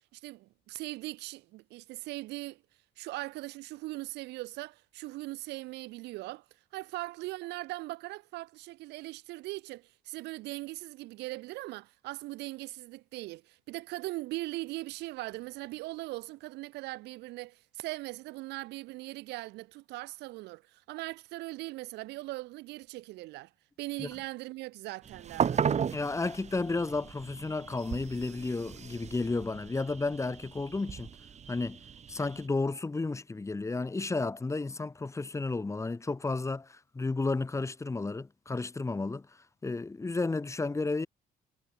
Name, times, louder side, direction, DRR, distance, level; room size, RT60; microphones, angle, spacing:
voice 1, 0.1-2.6 3.0-6.4 6.7-23.5 23.8-25.7, right 20 dB, 90° right, 4.9 m, -40 dB
sound 1, 25.1-32.4, right 7 dB, 40° right, 7.2 m, -35 dB
voice 2, 25.9-31.1 31.5-31.8 32.1-39.3 39.6-41.1, left 3 dB, 15° left, 2.3 m, -32 dB
cardioid pair, 110°, 17 cm